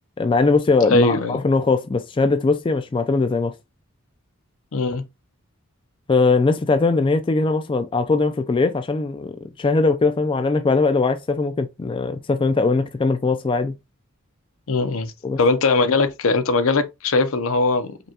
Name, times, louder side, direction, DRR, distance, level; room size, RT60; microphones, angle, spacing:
voice 1, 0.2-3.5 6.1-13.7 15.2-15.4, left 3 dB, 25° left, 0.3 m, -20 dB
voice 2, 0.9-1.4 4.7-5.0 14.7-15.1 15.4-18.0, left 3 dB, 65° left, 0.6 m, -20 dB
5.2 x 2.3 x 2.8 m
head